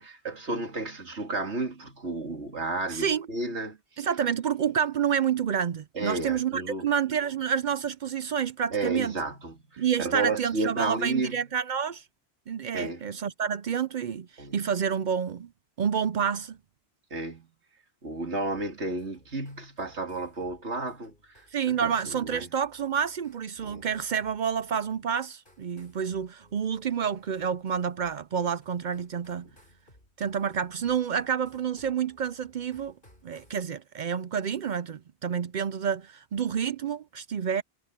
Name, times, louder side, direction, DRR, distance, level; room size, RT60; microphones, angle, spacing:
voice 1, 0.0-4.1 5.9-6.9 8.7-11.4 12.7-13.1 14.4-14.7 17.1-17.5 18.0-22.5 23.6-23.9 29.4-29.6, right 2 dB, 90° right, 2.9 m, -32 dB
voice 2, 2.9-3.3 4.0-9.1 9.8-12.0 12.5-14.3 14.5-15.5 15.8-16.6 21.5-29.5 30.2-32.9 33.2-37.6, right 7 dB, 55° right, 0.6 m, -29 dB
sound 1, 18.5-33.7, left 1 dB, 50° left, 8.3 m, -61 dB
omnidirectional pair, 1.1 m